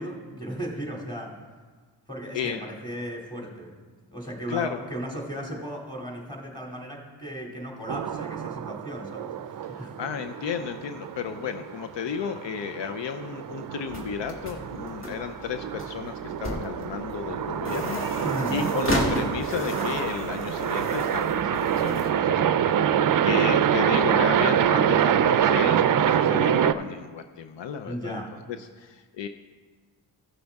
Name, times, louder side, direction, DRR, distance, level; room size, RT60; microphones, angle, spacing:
voice 1, 0.0-1.3 2.1-3.7 4.1-10.0 18.2-18.5 27.9-28.3, equal, 10° left, -1 dB, 2.6 m, -36 dB
voice 2, 4.5-4.8 9.7-18.2 18.5-22.8 23.2-28.2 28.5-29.3, left 7 dB, 75° left, 8 dB, 0.6 m, -33 dB
sound 1, 7.9-26.7, right 9 dB, 50° right, 0.5 m, -25 dB
sound 2, 13.9-22.1, left 1 dB, 30° left, 1.8 m, -33 dB
15.0 x 6.3 x 3.5 m, 1.4 s
cardioid pair, 55°, 44 cm